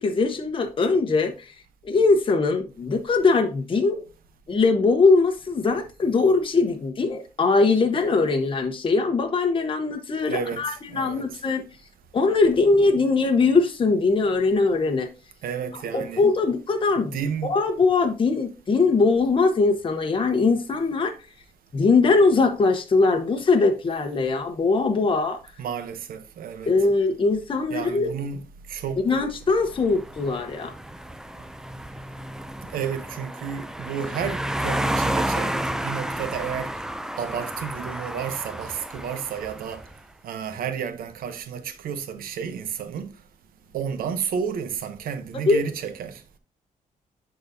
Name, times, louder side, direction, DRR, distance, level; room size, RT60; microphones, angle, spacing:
voice 1, 0.0-1.3 1.8-4.0 4.5-11.6 12.1-15.1 15.9-17.2 17.5-21.1 21.7-25.4 26.7-28.1 29.0-30.7 45.5-45.6, left 3 dB, 35° left, 1.0 m, -21 dB
voice 2, 10.3-11.3 15.4-16.3 17.0-17.6 25.6-26.7 27.7-29.0 32.7-36.7 37.2-39.8 40.2-43.1 43.7-46.2, right 7 dB, 85° right, 0.8 m, -31 dB
sound 1, 29.6-39.9, right 1 dB, 5° right, 0.4 m, -31 dB
10.5 x 4.0 x 2.7 m
cardioid pair, 100°, 15 cm